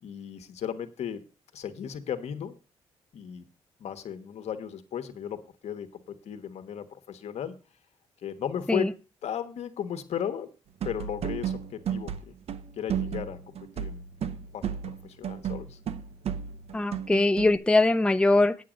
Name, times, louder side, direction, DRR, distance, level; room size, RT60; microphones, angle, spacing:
voice 1, 0.0-1.2 1.5-2.6 3.1-3.4 3.8-7.6 8.2-8.9 9.2-10.5 10.8-12.3 12.8-15.8, left 9 dB, 70° left, 8 dB, 1.3 m, -36 dB
sound 1, 10.8-12.2 12.5-17.6, right 8 dB, 60° right, 0.8 m, -34 dB
voice 2, 16.7-18.6, left 2 dB, 10° left, 10 dB, 0.5 m, -22 dB
8.6 x 8.3 x 5.1 m, 0.32 s
cardioid pair, 80°, 12 cm